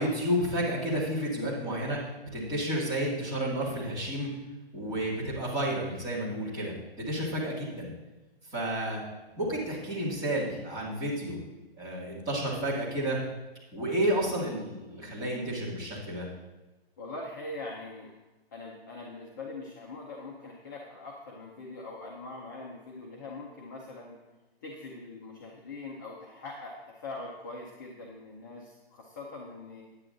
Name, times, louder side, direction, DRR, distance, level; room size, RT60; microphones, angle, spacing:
voice 1, 0.0-2.0 2.3-4.3 4.7-7.9 8.5-9.0 9.4-11.4 11.8-13.2 13.7-16.3, right 1 dB, 10° right, -8 dB, 2.2 m, -31 dB
voice 2, 17.0-18.1 18.5-24.2 24.6-29.8, left 2 dB, 20° left, -2 dB, 0.6 m, -42 dB
9.6 x 9.3 x 3.8 m, 1.1 s
hypercardioid pair, 165°, 31 cm